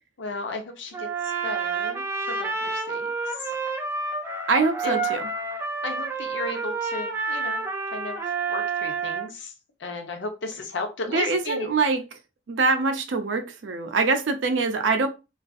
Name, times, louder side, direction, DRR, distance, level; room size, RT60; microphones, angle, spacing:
voice 1, 0.2-3.5 4.8-5.1 5.8-7.6 7.9-8.2 8.5-9.5 9.8-11.7, left 2 dB, 75° left, 0.6 m, -34 dB
Trumpet, 0.9-9.3, right 4 dB, 15° right, 0.4 m, -29 dB
voice 2, 4.5-5.2 11.1-12.0 12.5-15.1, right 4 dB, 80° right, 0.4 m, -24 dB
2.4 x 2.4 x 2.3 m
head